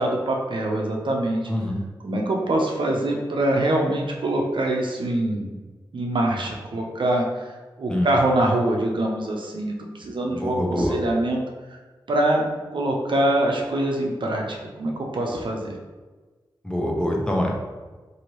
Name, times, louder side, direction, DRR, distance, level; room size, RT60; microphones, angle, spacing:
voice 1, 0.0-1.4 2.0-5.5 5.9-7.4 7.8-9.7 10.0-11.4 12.1-15.7, right 1 dB, 65° right, 0 dB, 0.6 m, -24 dB
voice 2, 1.5-1.8 7.9-8.1 10.3-11.0 16.6-17.5, left 1 dB, 10° left, -1 dB, 0.6 m, -25 dB
2.8 x 2.6 x 3.0 m, 1.3 s
cardioid pair, 50°, 9 cm